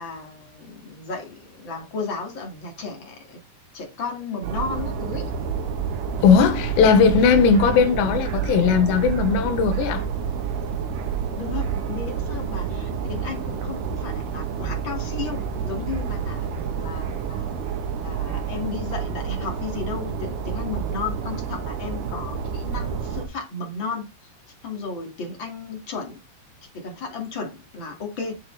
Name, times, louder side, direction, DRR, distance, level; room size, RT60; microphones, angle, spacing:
voice 1, 0.0-3.4 3.7-5.3 11.3-17.6 18.0-24.3 24.6-26.2 26.6-28.4, left 4 dB, 35° left, 2.0 m, -34 dB
sound 1, 4.4-23.3, right 7 dB, 70° right, 2.1 m, -29 dB
voice 2, 6.2-10.0, left 6 dB, 75° left, 3.3 m, -18 dB
8.4 x 7.9 x 3.3 m
omnidirectional pair, 5.3 m